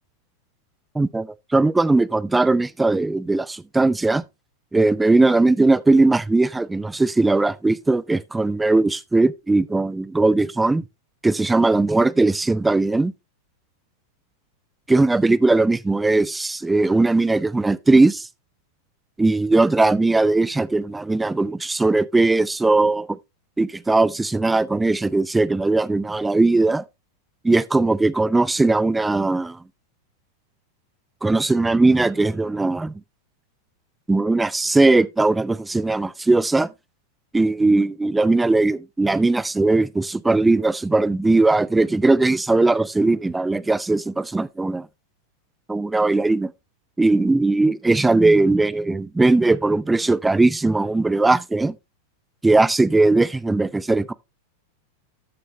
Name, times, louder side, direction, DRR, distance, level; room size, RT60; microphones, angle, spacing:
voice 1, 0.9-4.2 4.7-10.8 11.2-13.1 14.9-18.2 19.2-23.1 23.6-26.8 27.4-29.6 31.2-32.9 34.1-36.7 37.3-44.9 45.7-46.5 47.0-51.8 52.4-54.1, right 2 dB, 10° right, 0.5 m, -19 dB
13.0 x 6.5 x 3.1 m
figure-of-eight pair, 90°, 0 cm